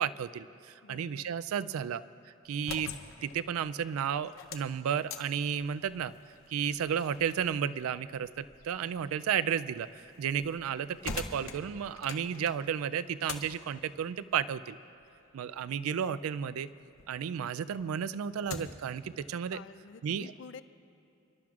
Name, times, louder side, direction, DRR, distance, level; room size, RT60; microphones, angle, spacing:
voice 1, 0.0-2.0 2.5-2.9 3.2-6.1 6.5-9.9 10.2-14.8 15.3-16.7 17.1-19.6 20.0-20.3, right 8 dB, 85° right, 15 dB, 0.3 m, -33 dB
voice 2, 0.8-1.4 19.5-20.6, left 5 dB, 55° left, 14 dB, 0.4 m, -49 dB
sound 1, 2.4-17.1 17.5-18.9, left 5 dB, 75° left, 0.8 m, -47 dB
28.0 x 12.0 x 2.4 m, 2.6 s
head